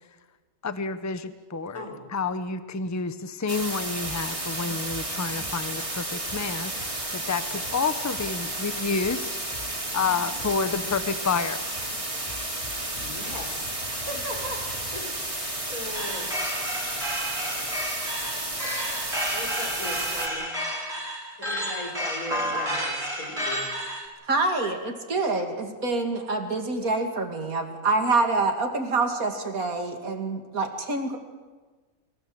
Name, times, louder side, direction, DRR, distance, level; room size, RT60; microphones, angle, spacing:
voice 1, 0.6-1.8 2.1-9.3 9.9-11.6, left 5 dB, 15° left, 12 dB, 0.7 m, -29 dB
sound 1, 3.5-20.3, right 1 dB, 25° right, 2.5 m, -32 dB
sound 2, 4.0-15.0, left 1 dB, 35° left, 4.1 m, -47 dB
voice 2, 10.0-10.6 12.9-16.3 19.3-20.6 21.4-23.7 24.6-24.7, left 1 dB, 80° left, 2 dB, 4.8 m, -38 dB
sound 3, 16.0-24.1, equal, 65° right, 4.5 m, -31 dB
voice 3, 24.3-31.2, right 3 dB, 85° right, 4 dB, 2.8 m, -26 dB
25.0 x 16.0 x 7.9 m, 1.3 s
omnidirectional pair, 1.5 m